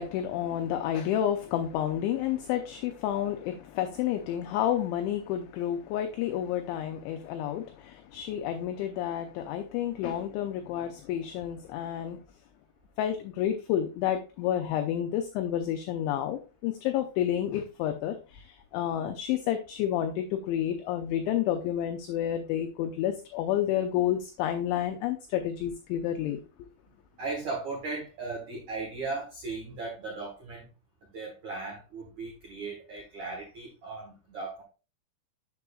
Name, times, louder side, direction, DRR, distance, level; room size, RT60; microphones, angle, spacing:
voice 1, 0.0-12.2 13.0-26.4, left 10 dB, 85° left, 6 dB, 2.6 m, -30 dB
voice 2, 27.2-30.7 31.1-34.6, right 3 dB, 80° right, -2 dB, 1.6 m, -37 dB
7.5 x 6.9 x 2.3 m, 0.32 s
omnidirectional pair, 5.9 m